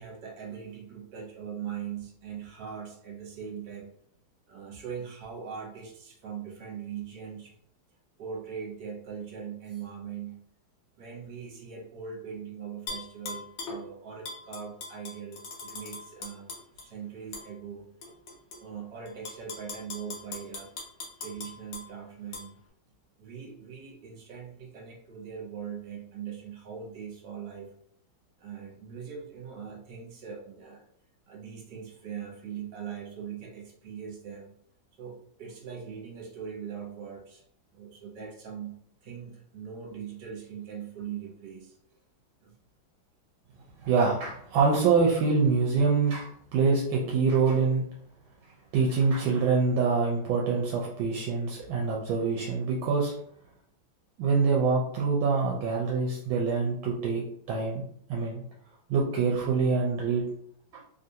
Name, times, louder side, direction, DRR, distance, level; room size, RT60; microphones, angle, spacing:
voice 1, 0.0-3.9 4.5-7.5 8.2-10.4 11.0-16.5 16.8-17.9 18.6-20.7 21.2-22.6 23.2-27.7 28.4-30.9 31.3-34.5 34.9-37.4 37.7-42.0 42.4-42.5, right 7 dB, 60° right, -2 dB, 1.5 m, -41 dB
Tap / Glass, 12.9-13.8 14.2-16.9 17.3-17.5 18.0-18.6 19.1-21.8 22.3-22.4, left 3 dB, 70° left, 1.3 m, -40 dB
voice 2, 43.8-47.8 48.7-53.1 54.2-57.2 57.5-57.8 58.1-58.4 58.9-60.2, right 4 dB, 80° right, -2 dB, 1.3 m, -25 dB
3.4 x 2.5 x 2.7 m, 0.68 s
omnidirectional pair, 2.2 m